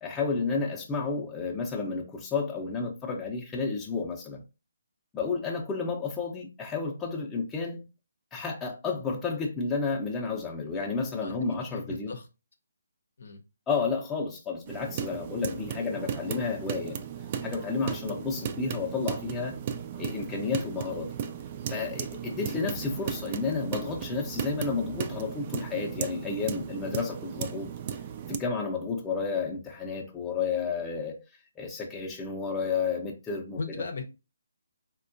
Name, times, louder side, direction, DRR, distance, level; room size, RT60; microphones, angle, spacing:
voice 1, 0.0-4.4 5.1-7.8 8.3-12.1 13.7-17.0 17.4-19.6 20.0-21.1 21.7-27.7 28.3-31.2 31.6-33.6, left 4 dB, 10° left, 0.6 m, -31 dB
voice 2, 11.2-12.3 13.2-13.4 33.6-34.0, left 4 dB, 60° left, 0.6 m, -37 dB
sound 1, 14.7-28.4, right 8 dB, 35° right, 0.3 m, -36 dB
4.1 x 2.2 x 2.5 m
figure-of-eight pair, 145°, 0 cm